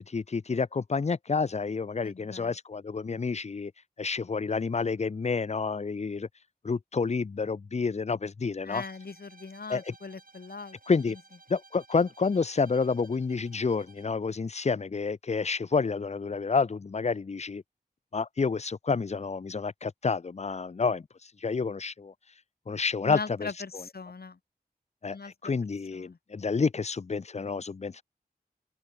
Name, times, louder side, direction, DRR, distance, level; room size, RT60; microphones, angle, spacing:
voice 1, 0.0-3.7 4.0-6.3 6.6-8.8 9.7-9.9 10.9-11.2 11.5-17.6 18.1-22.1 22.7-23.5 25.0-28.0, left 4 dB, 40° left, 0.5 m, -29 dB
voice 2, 2.0-2.6 8.6-10.8 11.1-11.2 23.0-24.4 25.1-25.5 25.9-26.2, left 4 dB, 70° left, 1.7 m, -40 dB
Bowed string instrument, 8.7-14.2, right 3 dB, 60° right, 3.8 m, -56 dB
open air
wide cardioid pair, 65°, 17 cm